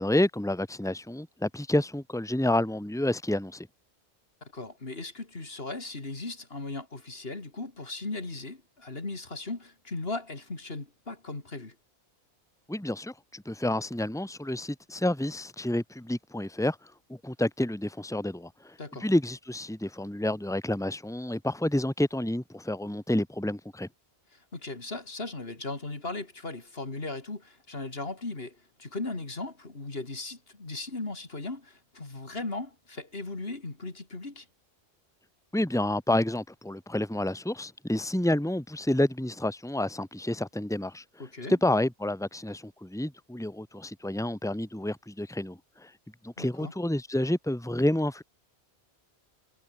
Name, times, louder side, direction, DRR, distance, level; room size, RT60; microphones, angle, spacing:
voice 1, 0.0-3.7 12.7-16.8 17.1-18.7 19.0-23.9 35.5-41.0 41.5-45.9 46.2-48.2, left 1 dB, 5° left, 2.1 m, -29 dB
voice 2, 4.4-11.7 18.8-19.1 24.3-34.5 41.2-41.6 46.4-46.7, left 2 dB, 65° left, 3.3 m, -37 dB
omnidirectional pair, 1.1 m